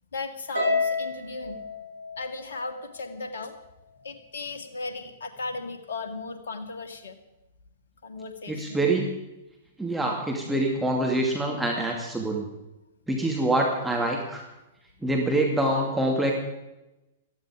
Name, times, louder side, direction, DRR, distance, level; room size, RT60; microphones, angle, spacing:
voice 1, 0.1-1.6 2.2-3.5 4.0-7.2 8.0-8.8, left 3 dB, 65° left, 8 dB, 2.2 m, -36 dB
Harp, 0.5-3.0, left 3 dB, 65° right, 7.8 m, -29 dB
voice 2, 8.5-9.1 9.8-12.5 13.1-14.4 15.0-16.3, right 1 dB, 5° right, -1 dB, 2.4 m, -25 dB
17.5 x 14.5 x 5.0 m, 0.95 s
figure-of-eight pair, 105°, 0 cm